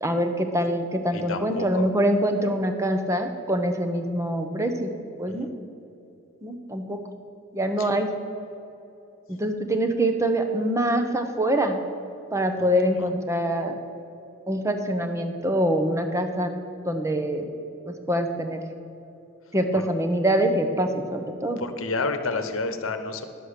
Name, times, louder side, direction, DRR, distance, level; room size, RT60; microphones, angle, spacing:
voice 1, 0.0-4.9 5.2-5.5 6.4-7.0 7.5-8.1 9.3-11.8 12.3-13.8 14.5-16.5 16.8-17.5 17.8-18.6 19.5-21.6, right 1 dB, 15° right, 6 dB, 0.8 m, -24 dB
voice 2, 1.1-1.8 7.8-7.9 12.6-12.7 13.0-13.1 19.7-19.8 21.6-23.2, left 3 dB, 80° left, 8 dB, 1.0 m, -30 dB
11.0 x 7.6 x 6.6 m, 2.9 s
head